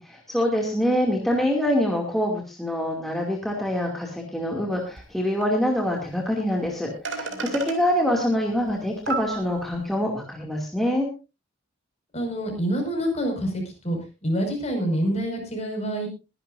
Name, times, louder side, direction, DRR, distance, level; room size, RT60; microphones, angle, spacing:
voice 1, 0.0-11.1, equal, ahead, -1 dB, 2.4 m, -25 dB
sound 1, 5.0-5.1 5.4-5.5 6.7-6.8 7.1-7.8 8.7-8.8 9.1-9.8, right 3 dB, 65° right, 2.9 m, -31 dB
voice 2, 12.1-16.1, equal, 35° left, 3 dB, 5.4 m, -27 dB
22.5 x 11.0 x 2.6 m, 0.29 s
head